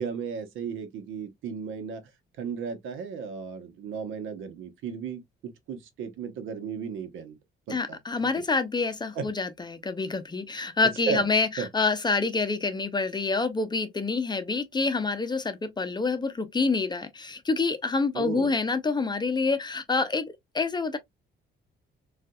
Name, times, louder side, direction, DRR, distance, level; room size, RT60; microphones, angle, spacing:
voice 1, 0.0-2.0 2.4-5.2 5.7-7.4 7.7-8.0 9.2-9.3 11.1-11.2 11.6-11.7 18.1-18.5, right 6 dB, 85° right, 0.9 m, -34 dB
voice 2, 7.7-21.0, left 4 dB, 20° left, 0.6 m, -27 dB
3.9 x 2.4 x 2.2 m
cardioid pair, 90°, 20 cm